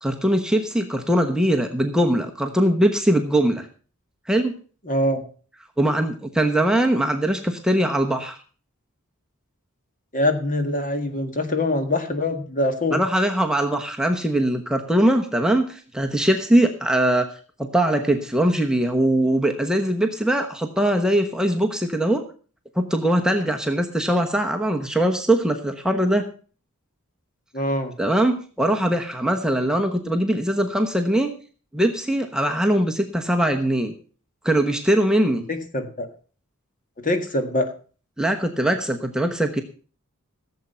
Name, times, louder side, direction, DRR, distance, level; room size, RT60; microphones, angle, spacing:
voice 1, 0.0-3.7 4.3-4.6 5.8-8.4 12.9-17.3 17.6-22.3 22.8-26.3 28.0-31.3 31.7-33.9 34.4-35.4 38.2-39.6, right 1 dB, 5° right, 3 dB, 1.0 m, -21 dB
voice 2, 4.9-5.2 10.1-13.0 27.5-27.9 35.5-36.1 37.0-37.7, left 1 dB, 40° left, 7 dB, 1.8 m, -24 dB
15.5 x 7.6 x 5.6 m, 0.39 s
head